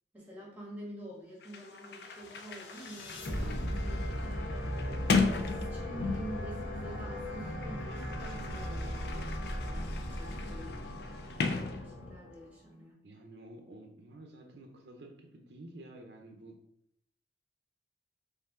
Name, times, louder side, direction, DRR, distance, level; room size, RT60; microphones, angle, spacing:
voice 1, 0.1-4.4 5.2-10.7 11.6-12.9, right 1 dB, 10° right, -4 dB, 1.3 m, -47 dB
Sliding door, 1.1-1.2 1.4-6.5 7.4-12.4, left 4 dB, 60° left, 0.4 m, -36 dB
sound 1, 2.3-12.5, equal, 85° left, 0.9 m, -37 dB
voice 2, 13.0-16.6, right 1 dB, 70° right, 3 dB, 0.6 m, -51 dB
4.5 x 2.7 x 3.7 m, 0.73 s
head